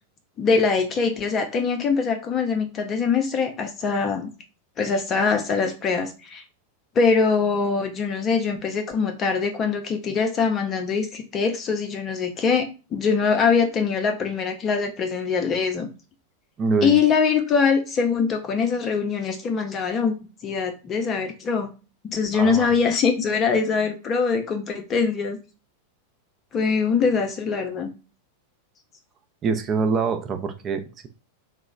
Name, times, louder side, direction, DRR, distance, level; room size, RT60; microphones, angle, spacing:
voice 1, 0.4-4.3 4.8-6.4 7.0-15.9 16.8-20.1 20.4-21.7 22.0-25.4 26.5-27.9, left 5 dB, 30° left, 0.5 m, -23 dB
voice 2, 16.6-16.9 22.3-22.7 29.4-31.1, right 4 dB, 25° right, 0.5 m, -24 dB
3.0 x 2.0 x 3.6 m
figure-of-eight pair, 90°, 0 cm